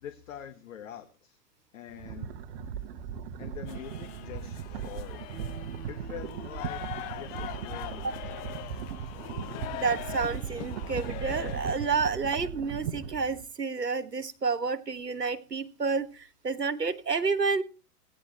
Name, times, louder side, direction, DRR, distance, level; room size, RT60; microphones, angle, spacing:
voice 1, 0.0-1.4 1.7-2.3 3.4-5.3 5.9-6.8 7.1-8.4, left 10 dB, 55° left, 9 dB, 1.5 m, -44 dB
sound 1, 1.9-13.4, right 7 dB, 40° right, 1.2 m, -38 dB
sound 2, 3.0-4.7 5.0-6.6, right 6 dB, 60° right, 1.5 m, -50 dB
sound 3, 3.7-12.0, left 13 dB, 20° left, 0.6 m, -42 dB
voice 2, 9.7-17.6, right 4 dB, 85° right, 14 dB, 1.2 m, -30 dB
16.0 x 10.0 x 4.4 m, 0.35 s
figure-of-eight pair, 105°, 47 cm